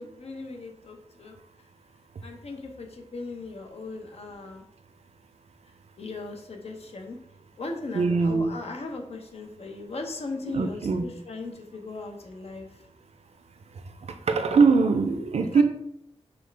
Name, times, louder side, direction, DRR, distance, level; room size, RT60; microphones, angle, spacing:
voice 1, 0.0-1.7 2.2-4.6 6.0-7.2 7.6-12.8 15.5-15.6, left 3 dB, 70° left, 3 dB, 0.7 m, -38 dB
voice 2, 7.9-8.5 10.5-11.0 13.7-15.6, right 4 dB, 75° right, 8 dB, 0.5 m, -22 dB
5.2 x 2.3 x 3.3 m, 0.75 s
wide cardioid pair, 90°, 11 cm